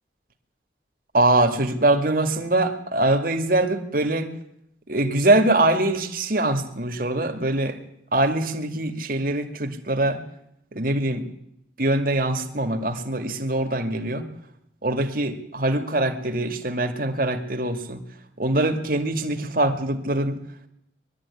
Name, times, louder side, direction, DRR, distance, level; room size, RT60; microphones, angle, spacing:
voice 1, 1.1-4.3 4.9-7.8 8.1-10.2 10.7-11.2 11.8-14.2 14.8-18.0 18.4-20.4, right 2 dB, 50° right, 6 dB, 2.2 m, -23 dB
21.5 x 13.0 x 9.8 m, 0.77 s
head